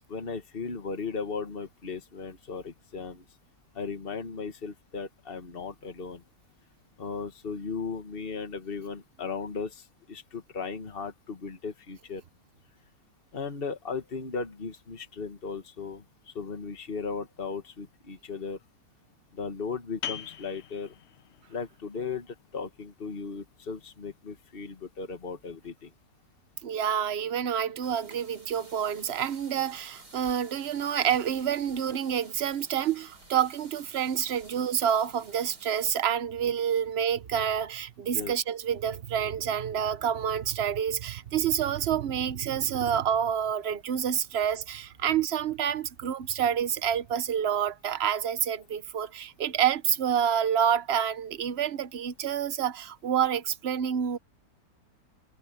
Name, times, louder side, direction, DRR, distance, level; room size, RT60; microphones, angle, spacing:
voice 1, 0.1-3.2 3.7-6.2 7.0-12.2 13.3-18.6 19.3-20.9 21.5-25.9 38.1-38.4, left 5 dB, 35° left, 1.9 m, -36 dB
sound 1, 20.0-25.4, left 9 dB, 60° left, 0.7 m, -44 dB
voice 2, 26.6-54.2, right 9 dB, 50° right, 0.9 m, -28 dB
sound 2, 27.8-36.0, right 2 dB, 75° right, 6.4 m, -53 dB
omnidirectional pair, 1.8 m